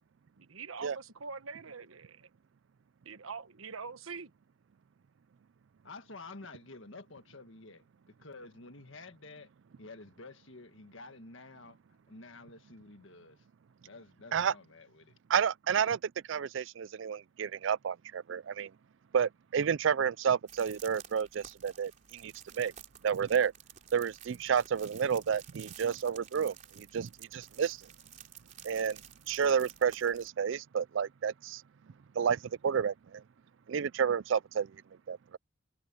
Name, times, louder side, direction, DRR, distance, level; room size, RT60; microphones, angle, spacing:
voice 1, 0.4-2.3 3.1-4.3, right 5 dB, 90° right, 1.3 m, -44 dB
voice 2, 5.8-7.8 8.2-9.5 9.8-11.8 12.1-13.4 13.8-15.1, left 3 dB, 70° left, 1.7 m, -50 dB
voice 3, 15.3-18.7 19.1-22.7 23.0-23.5 23.9-27.9 28.6-29.0 29.3-31.6 32.2-33.2 33.7-34.7 35.1-35.4, right 7 dB, 65° right, 0.4 m, -30 dB
sound 1, 20.5-30.3, right 9 dB, 35° right, 3.5 m, -53 dB
head